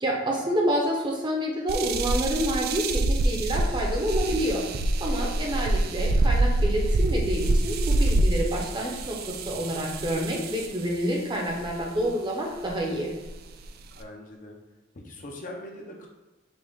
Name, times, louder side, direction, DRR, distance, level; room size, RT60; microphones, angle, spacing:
voice 1, 0.0-4.6 5.0-13.1, equal, 25° right, -1 dB, 0.8 m, -28 dB
sound 1, 1.7-10.8 11.6-12.0 12.7-12.8 13.2-14.0, right 2 dB, 50° right, 0.3 m, -26 dB
voice 2, 5.2-5.5 14.0-14.6 14.9-16.1, left 1 dB, 40° left, 0 dB, 0.6 m, -41 dB
5.2 x 2.4 x 3.6 m, 1.2 s
head